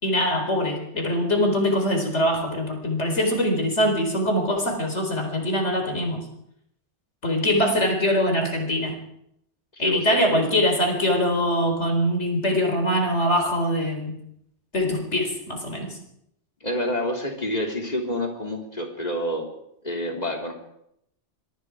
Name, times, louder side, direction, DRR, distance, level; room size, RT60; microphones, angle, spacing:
voice 1, 0.0-6.2 7.2-9.0 9.8-14.1 14.7-16.0, equal, 70° left, 3 dB, 4.7 m, -23 dB
voice 2, 9.8-10.5 16.6-19.5 19.8-20.6, left 1 dB, 35° left, 2 dB, 3.5 m, -28 dB
25.5 x 23.0 x 4.9 m, 0.77 s
omnidirectional pair, 1.2 m